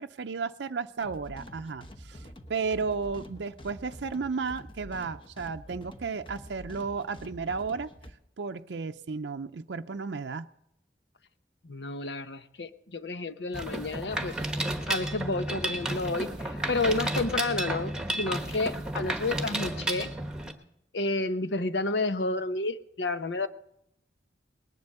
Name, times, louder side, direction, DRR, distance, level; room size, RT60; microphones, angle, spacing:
voice 1, 0.0-7.9 8.4-10.5, right 4 dB, 90° right, 7 dB, 0.5 m, -33 dB
sound 1, 1.0-8.1, equal, 30° left, 1.1 m, -47 dB
voice 2, 11.6-14.3 14.9-20.1 20.9-23.5, left 2 dB, 85° left, 10 dB, 0.9 m, -30 dB
Mechanisms, 13.5-20.5, right 1 dB, 5° right, 1.2 m, -32 dB
20.0 x 10.5 x 6.7 m, 0.78 s
head